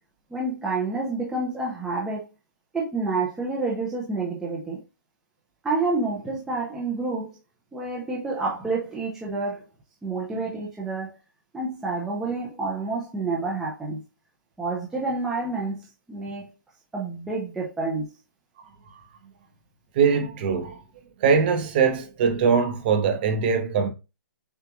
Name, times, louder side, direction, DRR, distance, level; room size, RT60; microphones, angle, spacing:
voice 1, 0.3-2.3 2.7-4.8 5.6-7.4 7.7-9.6 10.0-11.1 11.5-14.0 14.6-16.5 16.9-18.1, right 3 dB, 5° right, 0.5 m, -28 dB
voice 2, 19.9-20.8 21.2-23.9, right 6 dB, 30° right, 0.8 m, -22 dB
6.8 x 2.4 x 2.9 m
hypercardioid pair, 165°, 11 cm